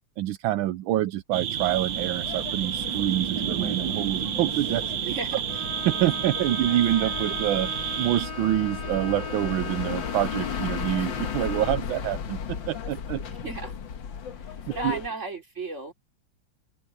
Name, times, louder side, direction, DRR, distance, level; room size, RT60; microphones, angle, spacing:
voice 1, 0.2-5.1 5.8-13.2 14.7-15.0, right 13 dB, 80° right, 1.4 m, -27 dB
sound 1, 1.3-8.3, right 9 dB, 60° right, 1.4 m, -30 dB
sound 2, 1.6-15.1, left 7 dB, 65° left, 2.0 m, -36 dB
voice 2, 5.0-5.4 13.4-13.7 14.7-15.9, right 2 dB, 35° right, 3.7 m, -34 dB
Bowed string instrument, 5.5-12.0, left 2 dB, 25° left, 1.0 m, -38 dB
open air
omnidirectional pair, 2.2 m